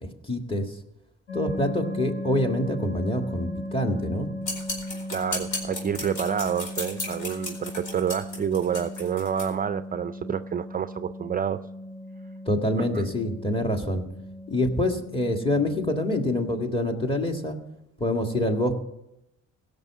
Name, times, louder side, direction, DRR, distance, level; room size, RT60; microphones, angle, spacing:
voice 1, 0.0-0.7 1.3-4.3 12.5-14.0 14.5-17.6 18.0-18.7, left 1 dB, 15° left, 4 dB, 1.8 m, -26 dB
sound 1, 1.3-16.6, left 1 dB, 45° left, 1.5 m, -37 dB
sound 2, 4.4-9.5, left 2 dB, 75° left, 4.4 m, -34 dB
voice 2, 5.1-11.6 12.9-13.0, right 8 dB, 30° right, 12 dB, 0.4 m, -28 dB
16.5 x 6.7 x 7.2 m, 0.89 s
cardioid pair, 90°, 30 cm